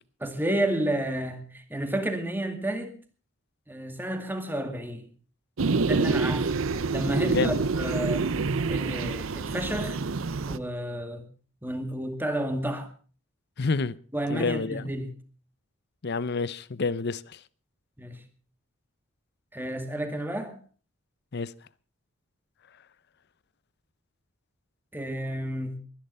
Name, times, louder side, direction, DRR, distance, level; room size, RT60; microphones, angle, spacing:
voice 1, 0.2-3.0 3.7-5.1 5.8-6.5 6.9-8.3 8.7-10.0 10.5-11.3 11.6-12.9 14.1-15.1 18.0-18.2 19.5-20.6 24.9-25.8, right 1 dB, 10° right, 2.2 m, -31 dB
sound 1, 5.6-10.6, right 4 dB, 75° right, 0.7 m, -27 dB
voice 2, 7.2-7.6 13.6-14.0 14.3-14.9 16.0-17.2 21.3-21.5, left 4 dB, 55° left, 0.7 m, -28 dB
22.0 x 10.5 x 5.5 m
head